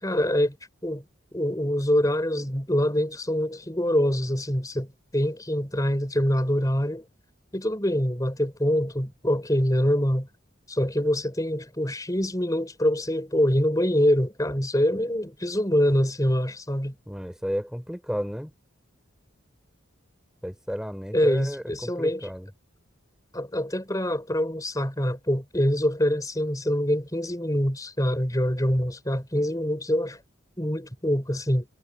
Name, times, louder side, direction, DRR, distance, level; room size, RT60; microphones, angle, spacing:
voice 1, 0.0-0.6 0.8-1.0 1.3-7.0 7.5-10.3 10.7-16.9 21.1-22.3 23.3-30.2 30.6-31.7, equal, 15° left, 4.8 m, -25 dB
voice 2, 17.1-18.5 20.4-22.5, equal, 5° right, 4.4 m, -32 dB
head